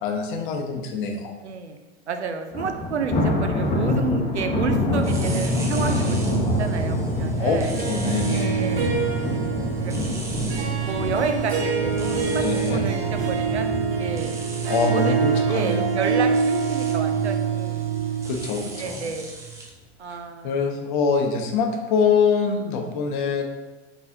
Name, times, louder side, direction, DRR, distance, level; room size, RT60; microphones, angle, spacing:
voice 1, 0.0-1.3 7.4-8.8 12.3-12.8 14.7-15.9 18.3-19.1 20.1-20.2 20.4-23.4, left 5 dB, 50° left, 3 dB, 0.7 m, -24 dB
voice 2, 1.4-1.8 2.1-7.7 8.3-8.9 9.8-9.9 10.8-12.4 12.7-13.7 14.0-14.3 14.9-15.2 15.5-17.9 18.8-19.3 20.0-20.5, right 5 dB, 80° right, 6 dB, 0.5 m, -30 dB
Thunder, 2.5-15.8 16.2-16.5 16.9-17.0 17.9-18.4, left 1 dB, 20° left, 0.8 m, -27 dB
sound 1, 5.0-19.7, right 6 dB, 10° right, 0.4 m, -30 dB
Harp, 7.7-18.9, right 5 dB, 65° right, 1.0 m, -26 dB
3.9 x 3.9 x 2.6 m, 1.2 s
figure-of-eight pair, 90°, 33 cm